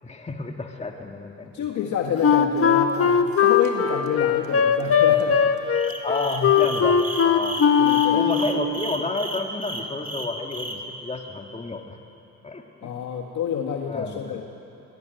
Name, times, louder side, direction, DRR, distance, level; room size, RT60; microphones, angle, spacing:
voice 1, 0.0-1.6 6.0-7.6 8.1-12.0 12.4-12.9 13.9-14.4, left 3 dB, 20° left, 2 dB, 2.1 m, -30 dB
voice 2, 1.5-5.6 7.8-8.2 12.8-14.4, left 8 dB, 75° left, 1 dB, 1.9 m, -28 dB
Wind instrument woodwind instrument, 2.2-8.5, left 7 dB, 50° left, 1.7 m, -19 dB
sound 1, 5.7-10.8, right 1 dB, 25° right, 3.3 m, -33 dB
23.5 x 21.5 x 9.3 m, 2.9 s
cardioid pair, 90°, 30 cm